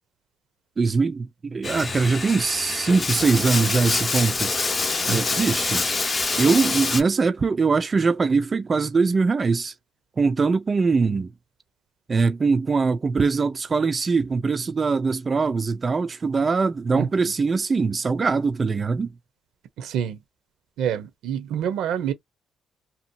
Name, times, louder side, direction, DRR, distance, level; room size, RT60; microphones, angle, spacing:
voice 1, 0.8-4.5 5.1-5.8 6.4-9.7 10.2-11.3 12.1-19.1, right 4 dB, 35° right, 0.3 m, -22 dB
Bathtub (filling or washing), 1.6-7.0, left 3 dB, 35° left, 0.6 m, -26 dB
voice 2, 5.1-5.4 17.0-17.3 19.8-20.2 20.8-22.1, right 9 dB, 85° right, 0.7 m, -27 dB
2.8 x 2.2 x 2.6 m
cardioid pair, 90°, 0 cm